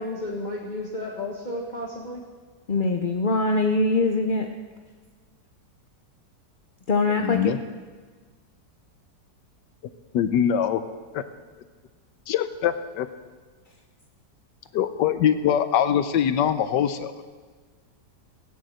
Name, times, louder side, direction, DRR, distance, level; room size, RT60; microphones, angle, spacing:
voice 1, 0.0-2.2, left 1 dB, 25° left, -2 dB, 1.6 m, -32 dB
voice 2, 2.7-4.5 6.9-7.5, left 3 dB, 50° left, 4 dB, 0.6 m, -22 dB
voice 3, 7.2-7.6 10.1-10.8 11.1-11.2 12.3-13.1 14.7-17.1, left 9 dB, 85° left, 11 dB, 1.4 m, -23 dB
16.5 x 9.6 x 7.7 m, 1.4 s
omnidirectional pair, 1.9 m